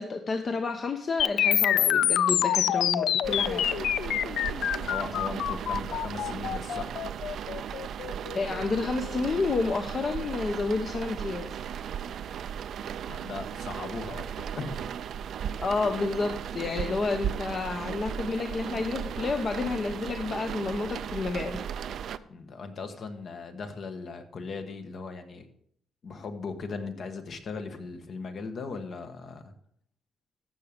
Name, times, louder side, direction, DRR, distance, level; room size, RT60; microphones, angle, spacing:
voice 1, 0.0-3.7 8.3-11.6 15.6-21.6, left 3 dB, 40° left, 6 dB, 0.8 m, -30 dB
sound 1, 1.2-9.2, left 10 dB, 80° left, 0.4 m, -26 dB
sound 2, 3.2-22.2, right 8 dB, 70° right, 0.4 m, -36 dB
voice 2, 4.8-7.0 13.1-15.0 22.3-25.5 26.0-29.5, left 4 dB, 55° left, 7 dB, 1.4 m, -38 dB
14.5 x 6.0 x 5.1 m, 0.67 s
cardioid pair, 115°, 0 cm